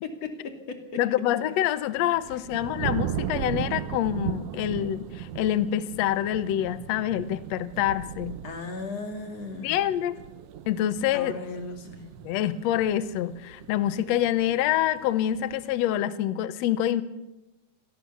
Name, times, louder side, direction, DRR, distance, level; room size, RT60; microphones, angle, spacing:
voice 1, 0.0-1.0 2.3-2.4 8.4-9.7 11.1-12.1, left 3 dB, 50° left, 5 dB, 3.5 m, -36 dB
voice 2, 1.0-8.4 9.6-10.2 10.7-11.4 12.2-17.0, left 12 dB, 70° left, 14 dB, 1.8 m, -26 dB
sound 1, 1.7-15.9, right 10 dB, 75° right, 1.4 m, -37 dB
27.0 x 17.5 x 7.0 m, 1.0 s
omnidirectional pair, 3.7 m